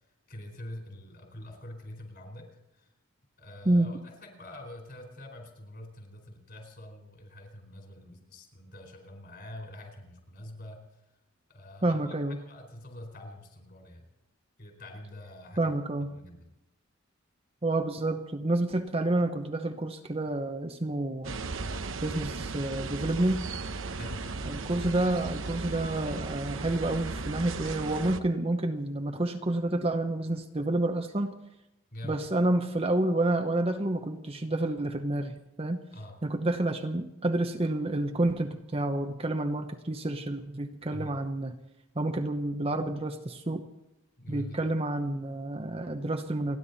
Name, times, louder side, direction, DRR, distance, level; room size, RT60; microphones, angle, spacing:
voice 1, 0.3-2.5 2.7-2.9 3.4-10.8 11.5-12.0 12.4-14.1 14.6-15.8 16.1-16.5 21.6-21.8 23.9-24.4 31.9-32.2 35.9-36.2 40.9-41.2 44.2-44.7, left 1 dB, 50° left, 3 dB, 4.4 m, -45 dB
voice 2, 11.8-12.4 15.6-16.1 17.6-21.4 22.0-23.4 24.4-31.4 32.0-35.8 36.2-41.5 41.9-43.7 44.3-46.6, right 1 dB, 30° right, 6 dB, 0.9 m, -29 dB
sound 1, 21.2-28.2, right 3 dB, 70° right, 0.9 m, -36 dB
29.0 x 11.0 x 4.1 m, 0.90 s
head